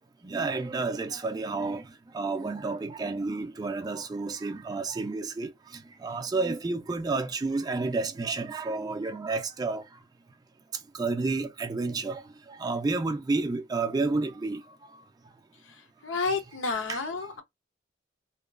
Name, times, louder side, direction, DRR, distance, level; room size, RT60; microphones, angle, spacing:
voice 1, 0.2-1.8 2.1-5.5 6.0-9.8 11.0-12.2 12.5-14.6 16.9-17.0, right 3 dB, 20° right, 0.3 m, -30 dB
voice 2, 15.6-17.4, left 4 dB, 90° left, 0.7 m, -31 dB
2.9 x 2.2 x 2.3 m
head